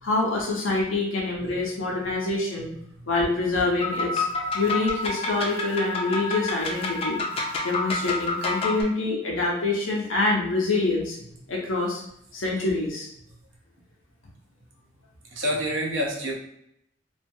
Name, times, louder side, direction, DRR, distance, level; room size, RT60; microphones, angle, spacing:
voice 1, 0.0-2.7 3.1-4.2 4.5-7.2 7.6-11.2 11.5-12.0 12.3-13.1, left 2 dB, 90° left, -3 dB, 0.6 m, -26 dB
sound 1, 3.8-8.8, left 3 dB, 30° left, 0.3 m, -28 dB
voice 2, 15.3-16.4, equal, 80° right, -1 dB, 0.7 m, -28 dB
2.4 x 2.2 x 2.6 m, 0.74 s
head